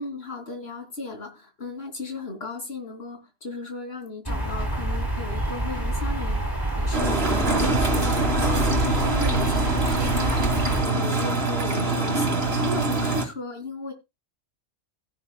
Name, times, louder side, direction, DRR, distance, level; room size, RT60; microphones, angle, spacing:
voice 1, 0.0-6.5 6.8-13.9, left 2 dB, 55° left, 3.6 m, -35 dB
sound 1, 4.3-10.8, right 1 dB, 15° right, 3.7 m, -27 dB
sound 2, 6.9-13.3, right 2 dB, 55° right, 2.2 m, -24 dB
16.5 x 9.9 x 2.4 m
omnidirectional pair, 1.3 m